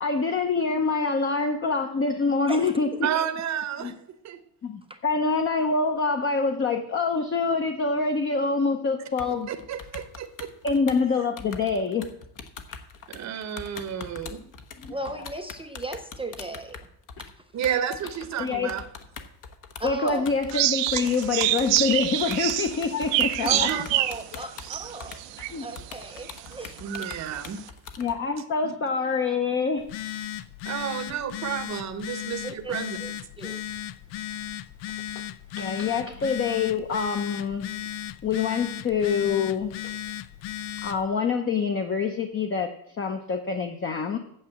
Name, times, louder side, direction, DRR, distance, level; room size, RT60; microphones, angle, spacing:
voice 1, 0.0-2.9 3.8-3.9 4.6-9.5 10.6-12.1 14.8-14.9 18.4-18.7 19.8-23.7 25.5-25.7 28.0-29.9 35.1-35.2 35.5-37.7 38.2-39.7 40.8-44.2, left 4 dB, 30° left, 5 dB, 0.8 m, -26 dB
voice 2, 2.5-3.0 4.9-5.0 14.9-16.9 17.2-17.5 19.8-20.4 23.4-25.3 25.6-27.1 32.4-33.6, right 1 dB, 15° right, 6 dB, 0.5 m, -36 dB
voice 3, 3.0-4.0 4.2-4.4 9.5-10.5 13.1-14.4 17.5-18.8 23.4-23.8 26.8-27.6 28.6-28.7 30.7-33.0, right 9 dB, 40° right, 9 dB, 0.9 m, -31 dB
sound 1, 9.2-28.2, left 5 dB, 45° left, 1.1 m, -42 dB
sound 2, 20.5-25.7 26.2-26.3 26.9-27.3, right 15 dB, 75° right, 0.7 m, -26 dB
Telephone, 29.8-41.1, left 11 dB, 80° left, 0.7 m, -36 dB
8.8 x 7.1 x 7.7 m, 0.71 s
cardioid pair, 160°, 44 cm